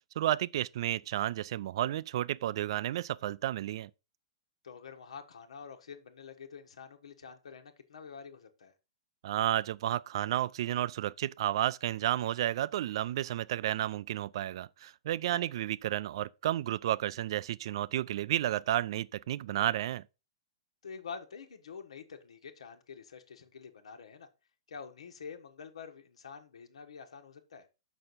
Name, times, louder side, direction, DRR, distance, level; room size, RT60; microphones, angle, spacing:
voice 1, 0.2-3.9 9.2-20.0, right 13 dB, 60° right, 0.4 m, -32 dB
voice 2, 4.6-8.7 15.3-15.5 20.8-24.3 24.7-27.7, left 6 dB, 90° left, 1.4 m, -47 dB
6.5 x 6.1 x 4.1 m
hypercardioid pair, 145°, 3 cm